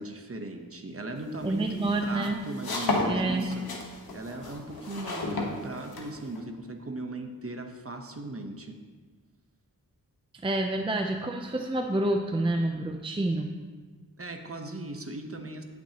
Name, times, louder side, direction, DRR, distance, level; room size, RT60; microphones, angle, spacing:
voice 1, 0.0-3.7 4.1-8.8 14.2-15.6, right 1 dB, 40° right, 5 dB, 1.0 m, -38 dB
sound 1, 1.3-6.4, left 2 dB, 85° left, 1.3 m, -33 dB
voice 2, 1.4-2.4 3.0-3.5 10.4-13.5, right 2 dB, 15° right, 4 dB, 0.5 m, -28 dB
16.5 x 6.2 x 2.9 m, 1.4 s
wide cardioid pair, 85°, 35 cm